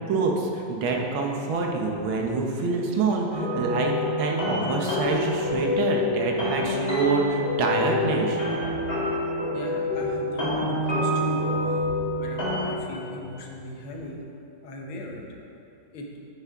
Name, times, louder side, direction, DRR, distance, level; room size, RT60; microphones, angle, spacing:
voice 1, 0.0-3.9 4.2-8.4, right 4 dB, 80° right, 1 dB, 1.8 m, -26 dB
sound 1, 3.3-12.7, left 1 dB, 30° left, 2.2 m, -27 dB
voice 2, 9.5-11.9 12.2-14.2 14.6-15.2 15.9-16.1, left 1 dB, 80° left, 0 dB, 1.9 m, -38 dB
9.0 x 8.9 x 3.6 m, 2.7 s
omnidirectional pair, 2.2 m